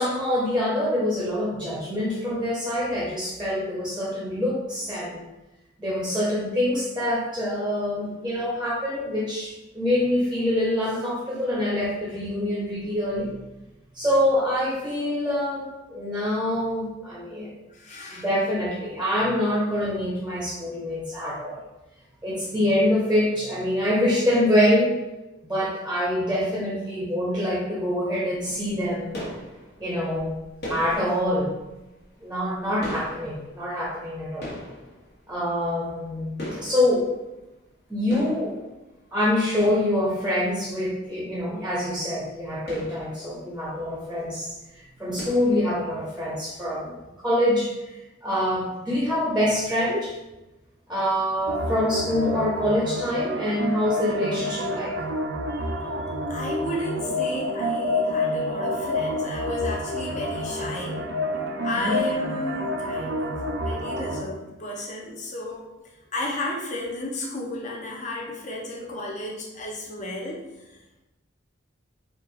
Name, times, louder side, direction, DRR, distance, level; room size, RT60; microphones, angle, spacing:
voice 1, 0.0-5.2 5.8-13.4 13.9-17.6 18.1-21.6 22.2-25.0 25.4-29.2 29.8-30.3 30.7-31.5 32.2-34.5 35.3-37.1 37.9-38.5 39.1-44.5 44.7-50.2 50.9-54.9 55.5-55.6 61.7-62.0, left 1 dB, 5° right, -6 dB, 0.8 m, -25 dB
voice 2, 17.7-18.3 56.3-61.0 61.6-65.7 66.1-70.8, left 1 dB, 35° left, -2 dB, 0.8 m, -33 dB
sound 1, 28.3-37.8 38.1-40.6 41.0-41.1 41.4-41.5 41.8-42.0 42.4-44.2 44.5-44.7 45.2-46.2, equal, 55° left, 1.3 m, -40 dB
sound 2, 51.5-64.2, left 1 dB, 65° right, 0.5 m, -28 dB
4.3 x 2.5 x 3.2 m, 1.0 s
head